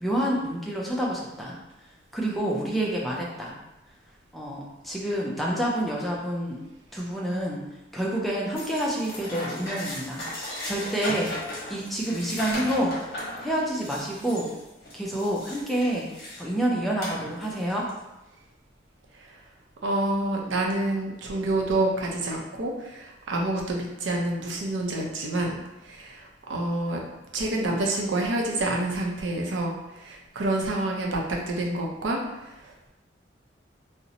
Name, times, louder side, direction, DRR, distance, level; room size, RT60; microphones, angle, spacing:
voice 1, 0.0-1.6 2.1-3.6 4.3-6.6 6.9-7.6 7.9-10.2 10.6-11.3 11.7-13.2 13.4-14.5 14.9-17.9, right 1 dB, ahead, -4 dB, 0.4 m, -28 dB
Debris Sifting Dry, 8.6-16.5 17.0-18.0, left 1 dB, 55° left, 0.9 m, -37 dB
voice 2, 19.8-27.0 27.3-32.2 32.4-32.7, right 2 dB, 90° right, 0 dB, 0.5 m, -28 dB
2.6 x 2.0 x 2.7 m, 0.97 s
head